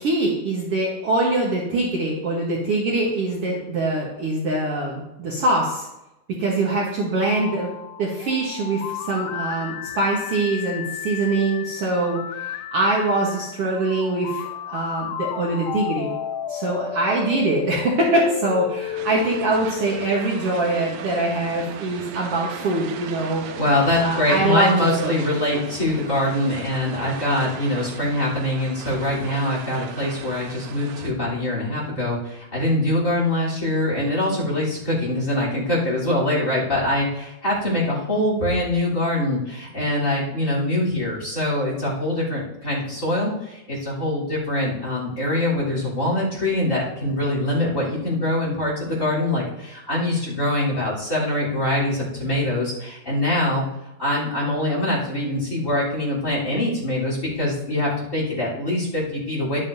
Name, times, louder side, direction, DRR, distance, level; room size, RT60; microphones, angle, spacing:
voice 1, 0.0-5.9 6.3-7.7 8.0-16.1 16.5-23.5 24.0-25.1, right 2 dB, 55° right, -3 dB, 1.9 m, -23 dB
sound 1, 7.2-21.1, left 10 dB, 85° left, 2.1 m, -33 dB
sound 2, 19.0-31.1, right 7 dB, 85° right, 2.3 m, -37 dB
voice 2, 23.6-53.6 54.0-59.6, left 1 dB, 25° left, -5 dB, 3.7 m, -23 dB
11.5 x 8.8 x 2.7 m, 0.92 s
omnidirectional pair, 3.6 m